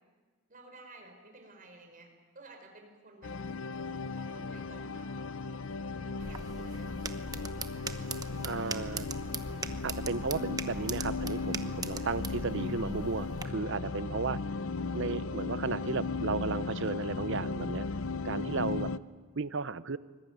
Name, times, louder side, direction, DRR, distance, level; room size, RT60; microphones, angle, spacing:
voice 1, 0.5-3.3 4.1-5.6 5.9-7.7 8.7-9.1 13.7-13.8, right 2 dB, 40° right, 4 dB, 4.9 m, -54 dB
sound 1, 3.2-19.0, left 4 dB, 70° left, 0.7 m, -36 dB
sound 2, 6.2-13.4, right 4 dB, 20° right, 1.0 m, -41 dB
voice 2, 8.4-9.0 9.8-14.4 14.9-17.8 18.2-18.9 19.4-20.0, right 4 dB, 60° right, 15 dB, 0.8 m, -34 dB
25.0 x 21.0 x 9.3 m, 1.4 s
head